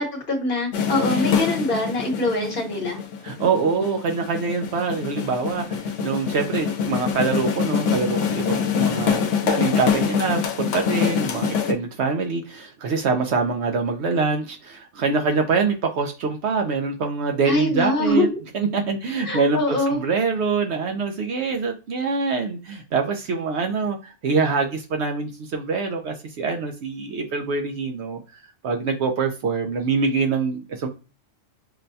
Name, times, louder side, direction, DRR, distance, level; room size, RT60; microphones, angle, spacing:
voice 1, 0.0-3.0 17.4-18.4 19.2-20.0, left 1 dB, 45° left, 0 dB, 1.1 m, -23 dB
sound 1, 0.7-11.7, left 7 dB, 70° left, 1.0 m, -25 dB
voice 2, 3.2-18.3 18.5-28.2 28.6-30.9, right 4 dB, 65° right, 4 dB, 0.8 m, -25 dB
5.9 x 2.2 x 2.6 m, 0.32 s
omnidirectional pair, 1.3 m